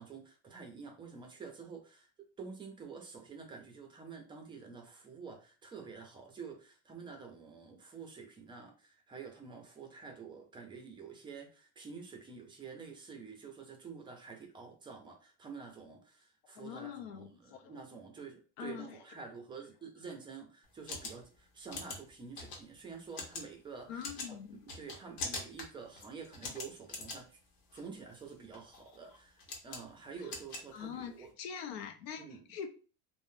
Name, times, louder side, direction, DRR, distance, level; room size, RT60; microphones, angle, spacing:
voice 1, 0.0-2.1 2.4-27.4 27.7-31.3 32.2-32.4, right 5 dB, 15° right, 0.4 m, -48 dB
voice 2, 16.6-17.7 18.6-19.0 23.9-24.6 30.7-32.7, left 8 dB, 90° left, 0.7 m, -43 dB
sound 1, 20.6-31.3, left 3 dB, 70° left, 1.1 m, -45 dB
3.4 x 2.0 x 2.6 m
cardioid pair, 155°, 30 cm